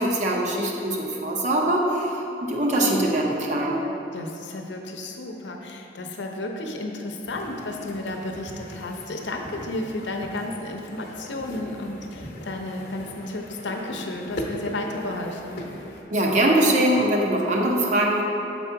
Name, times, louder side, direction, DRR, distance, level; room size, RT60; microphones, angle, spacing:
voice 1, 0.0-3.9 16.1-18.2, right 1 dB, 40° right, -1 dB, 0.8 m, -22 dB
voice 2, 4.1-15.7, left 2 dB, 80° left, 2 dB, 0.7 m, -32 dB
sound 1, 7.3-16.0, left 1 dB, 55° left, 0.8 m, -39 dB
6.9 x 4.2 x 4.6 m, 2.9 s
head